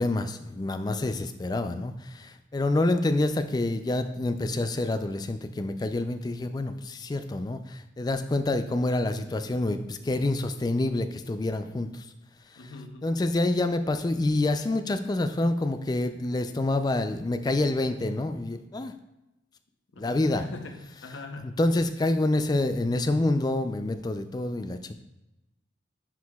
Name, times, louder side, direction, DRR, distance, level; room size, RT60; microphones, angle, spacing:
voice 1, 0.0-12.1 13.0-18.9 20.0-20.5 21.6-24.9, left 2 dB, 20° left, 9 dB, 0.3 m, -27 dB
voice 2, 12.6-13.1 19.9-21.6, left 3 dB, 90° left, 5 dB, 0.7 m, -42 dB
9.4 x 4.8 x 2.3 m, 0.96 s
head